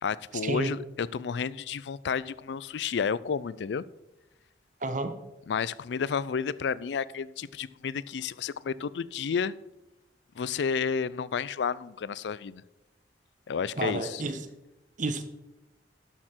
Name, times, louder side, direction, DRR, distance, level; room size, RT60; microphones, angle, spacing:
voice 1, 0.0-3.8 5.5-9.5 10.4-12.6 13.5-14.2, left 6 dB, 75° left, 0.4 m, -31 dB
voice 2, 4.8-5.1 13.8-14.4 15.0-15.2, right 3 dB, 45° right, 1.0 m, -30 dB
12.0 x 6.6 x 4.4 m
head